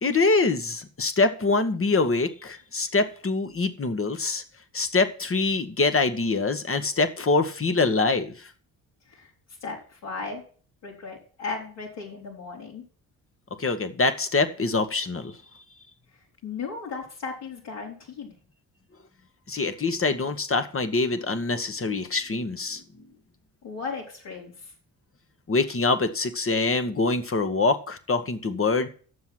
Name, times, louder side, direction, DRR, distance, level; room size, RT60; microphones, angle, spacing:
voice 1, 0.0-4.4 4.7-8.3 13.6-15.3 19.5-22.8 25.5-28.9, left 3 dB, 30° left, 9 dB, 1.3 m, -24 dB
voice 2, 9.6-10.4 10.8-12.8 16.1-18.3 23.6-24.7, left 4 dB, 65° left, -4 dB, 3.3 m, -36 dB
9.6 x 7.1 x 6.0 m, 0.42 s
hypercardioid pair, 45°, 46 cm